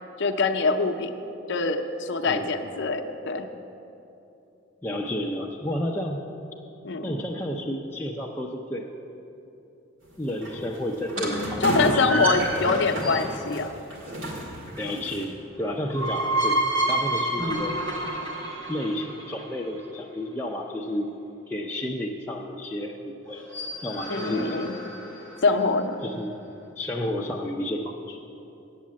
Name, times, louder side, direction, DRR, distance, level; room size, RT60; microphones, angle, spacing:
voice 1, 0.2-1.1 1.5-3.5 6.8-7.2 11.6-13.7 24.1-24.8 25.4-26.0, left 4 dB, 65° left, 6 dB, 0.6 m, -24 dB
voice 2, 4.8-6.2 7.0-8.9 10.2-12.3 14.8-16.6 16.9-17.7 18.7-21.1 21.5-23.5 23.8-24.6 26.0-26.3 26.8-28.2, left 1 dB, 10° left, -2 dB, 0.5 m, -31 dB
sound 1, 10.0-15.3, right 1 dB, 70° right, 2.1 m, -32 dB
sound 2, 11.1-13.4 15.6-19.7 23.3-25.5, right 1 dB, 90° right, 1.8 m, -29 dB
8.2 x 7.3 x 8.5 m, 2.8 s
head